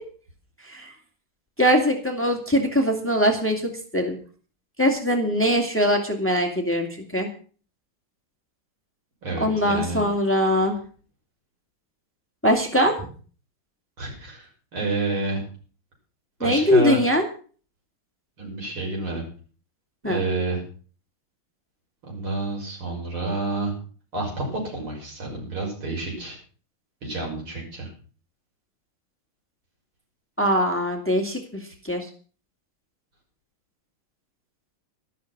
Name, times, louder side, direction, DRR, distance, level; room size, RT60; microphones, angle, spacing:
voice 1, 1.6-4.2 4.8-6.9 7.1-7.3 9.4-10.8 12.4-13.1 16.4-17.2 20.0-20.2 30.4-32.1, equal, 5° left, 3 dB, 2.2 m, -22 dB
voice 2, 9.2-10.0 14.0-15.4 16.4-17.0 18.4-19.2 20.0-20.6 22.1-23.8 24.1-26.4 27.0-27.9, right 2 dB, 85° right, 0 dB, 6.8 m, -29 dB
13.0 x 12.0 x 6.0 m, 0.41 s
omnidirectional pair, 2.3 m